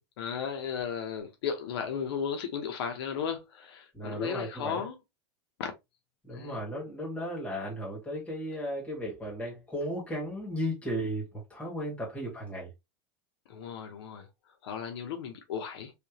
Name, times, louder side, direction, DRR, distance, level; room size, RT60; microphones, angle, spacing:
voice 1, 0.2-5.0 5.6-5.7 6.3-6.6 13.5-14.3 14.6-15.9, left 7 dB, 75° left, 0.9 m, -35 dB
voice 2, 3.9-4.8 6.3-12.7, equal, 10° left, 1.9 m, -35 dB
3.4 x 2.8 x 2.9 m
supercardioid pair, 165°, 13 cm